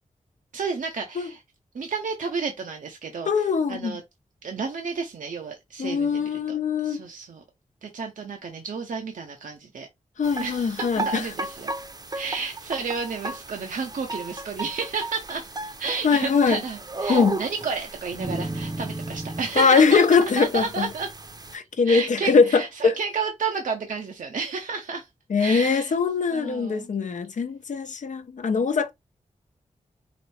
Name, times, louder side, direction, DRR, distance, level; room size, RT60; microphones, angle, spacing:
voice 1, 0.5-1.4 1.7-3.3 3.7-4.0 4.4-6.6 6.8-7.4 7.8-9.9 10.4-11.7 12.1-21.1 21.8-25.1 25.4-25.9 26.3-26.9, right 5 dB, 75° right, 0.8 m, -31 dB
voice 2, 3.3-4.0 5.8-7.0 10.2-11.3 16.0-16.6 17.1-17.4 19.6-20.9 21.5-23.0 25.3-28.9, left 5 dB, 70° left, 0.7 m, -22 dB
sound 1, 10.2-21.6, right 2 dB, 30° right, 0.7 m, -34 dB
5.1 x 2.1 x 4.2 m
cardioid pair, 70°, 13 cm